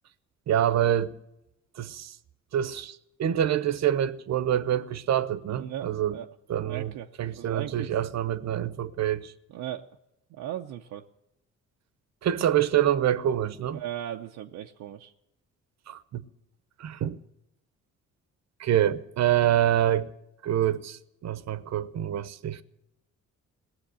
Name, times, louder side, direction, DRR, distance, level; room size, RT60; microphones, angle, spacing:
voice 1, 0.5-1.1 1.8-2.2 2.5-6.2 6.5-6.9 7.2-9.3 12.2-13.8 15.9-16.2 16.8-17.2 18.6-20.1 20.4-22.6, right 11 dB, 60° right, 0.9 m, -26 dB
voice 2, 5.5-6.3 6.6-7.9 9.5-9.9 10.3-11.0 13.7-15.1, right 11 dB, 85° right, 0.7 m, -37 dB
18.0 x 7.2 x 10.0 m
cardioid pair, 90°, 30 cm